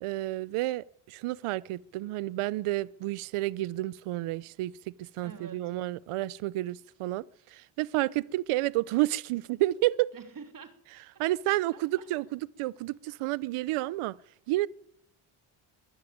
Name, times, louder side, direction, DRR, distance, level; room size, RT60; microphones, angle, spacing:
voice 1, 0.0-10.1 11.2-14.2 14.5-14.7, right 17 dB, 90° right, 0.7 m, -30 dB
voice 2, 5.2-5.7 10.1-11.4 11.7-12.1, right 6 dB, 40° right, 3.2 m, -48 dB
23.0 x 12.0 x 9.4 m
cardioid pair, 110°, 49 cm